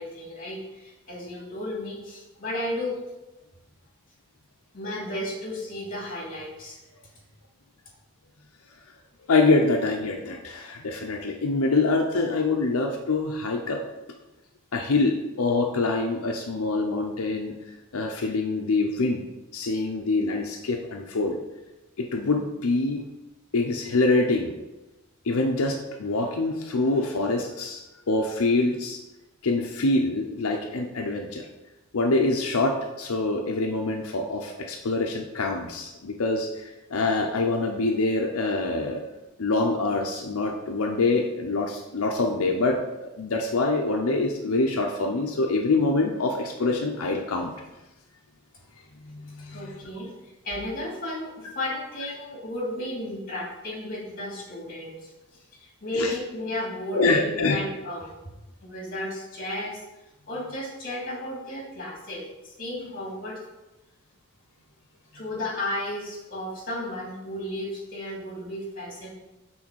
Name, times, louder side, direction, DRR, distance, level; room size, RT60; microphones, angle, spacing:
voice 1, 0.0-3.0 4.7-6.8 49.5-50.1 50.4-55.1 55.5-58.1 58.6-59.8 60.3-63.4 65.1-69.1, left 1 dB, 40° left, -3 dB, 2.6 m, -33 dB
voice 2, 9.3-13.8 14.7-17.5 17.9-19.3 19.5-21.4 22.0-23.0 23.5-24.5 25.2-29.0 29.4-31.5 31.9-39.0 39.4-47.5 49.0-49.7 55.9-56.1 56.9-57.6, left 3 dB, 90° left, 2 dB, 0.7 m, -25 dB
6.3 x 3.9 x 6.1 m, 1.0 s
head